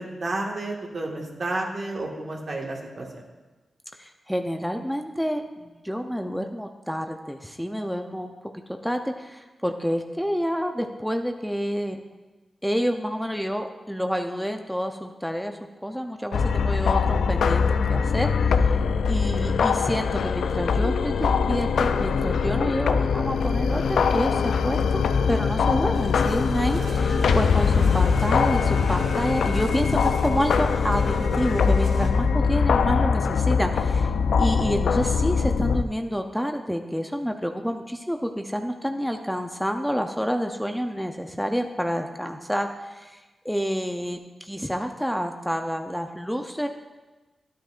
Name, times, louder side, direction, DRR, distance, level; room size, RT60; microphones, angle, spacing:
voice 1, 0.0-3.1 19.4-19.6 29.5-29.6, right 2 dB, 60° right, -1 dB, 1.7 m, -31 dB
voice 2, 4.0-8.4 8.8-12.0 12.6-18.8 19.1-34.1 34.4-46.7, equal, ahead, 5 dB, 0.6 m, -28 dB
sound 1, 16.3-35.8, left 5 dB, 90° left, 0.3 m, -22 dB
sound 2, 25.9-32.1, right 2 dB, 80° right, 1.3 m, -38 dB
12.0 x 9.0 x 2.5 m, 1.2 s
cardioid pair, 55°, 0 cm